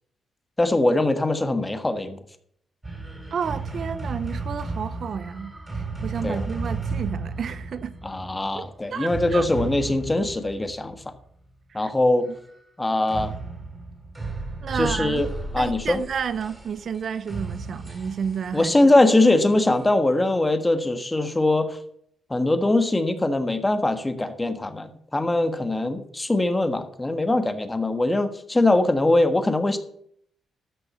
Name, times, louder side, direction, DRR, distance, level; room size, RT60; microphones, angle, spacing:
voice 1, 0.6-2.2 6.2-6.4 8.0-11.0 11.7-12.3 12.8-13.3 14.7-15.3 15.5-16.0 18.5-21.8 22.3-29.8, left 2 dB, 15° left, 1.5 m, -22 dB
sound 1, 2.8-11.2 13.1-19.9, right 3 dB, 20° right, 3.7 m, -34 dB
voice 2, 3.3-7.9 8.6-9.5 11.7-11.9 14.6-15.2 15.6-18.9, right 7 dB, 60° right, 0.6 m, -31 dB
14.0 x 6.3 x 5.6 m
cardioid pair, 90°, 0 cm